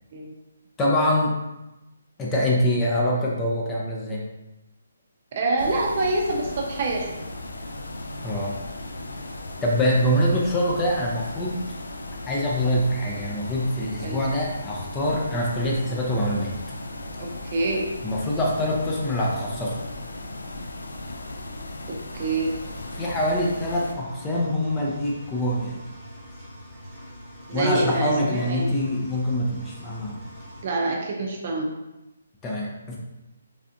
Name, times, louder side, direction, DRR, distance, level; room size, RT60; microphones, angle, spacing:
voice 1, 0.8-1.4 2.2-4.2 8.2-8.6 9.6-11.7 12.3-16.5 18.0-19.7 23.0-25.8 27.5-30.2 32.4-33.0, equal, 15° left, -4 dB, 0.5 m, -24 dB
voice 2, 5.4-7.1 14.0-14.2 17.2-17.9 22.1-22.5 27.5-28.7 30.6-31.7, right 2 dB, 45° right, 0 dB, 0.6 m, -26 dB
sound 1, 5.6-23.9, left 2 dB, 90° left, 0.4 m, -37 dB
Engine, 22.2-30.6, left 1 dB, ahead, 1.2 m, -43 dB
3.3 x 2.5 x 2.6 m, 0.97 s
hypercardioid pair, 155°, 0 cm